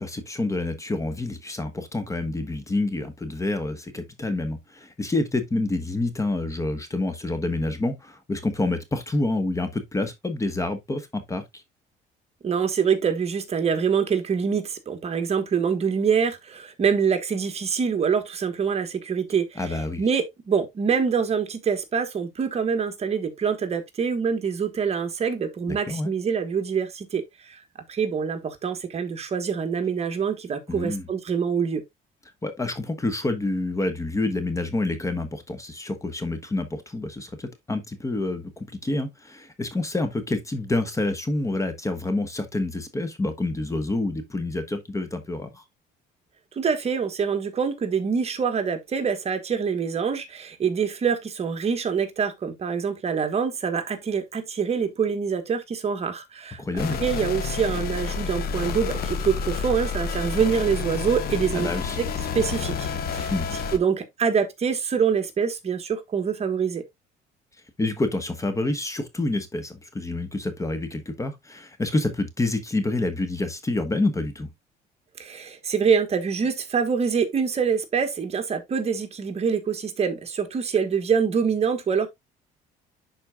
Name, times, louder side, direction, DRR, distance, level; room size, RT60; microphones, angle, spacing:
voice 1, 0.0-11.6 19.6-20.0 25.7-26.1 30.7-31.1 32.4-45.6 56.6-57.0 61.5-62.0 63.3-63.5 67.8-74.5, left 2 dB, 20° left, 1.1 m, -28 dB
voice 2, 12.4-19.6 20.0-27.6 27.9-31.8 46.5-56.6 57.0-61.7 62.0-62.1 62.3-63.3 63.7-66.8 75.2-82.1, right 6 dB, 40° right, 1.4 m, -25 dB
sound 1, 56.8-63.8, left 5 dB, 65° left, 1.0 m, -29 dB
11.0 x 4.3 x 2.3 m
cardioid pair, 110°, 17 cm